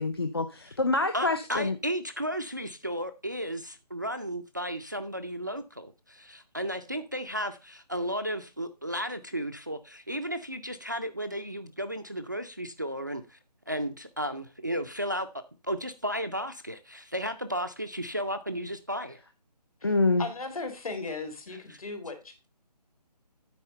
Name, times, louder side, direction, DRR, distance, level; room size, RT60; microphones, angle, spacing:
voice 1, 0.0-1.8 19.8-20.3, left 3 dB, 35° left, 9 dB, 0.4 m, -26 dB
voice 2, 1.1-13.4 13.7-19.2 21.7-21.8, equal, 30° right, 9 dB, 0.4 m, -34 dB
voice 3, 20.2-22.3, left 3 dB, 55° left, 6 dB, 2.2 m, -36 dB
9.5 x 4.1 x 5.3 m, 0.29 s
hypercardioid pair, 175°, 21 cm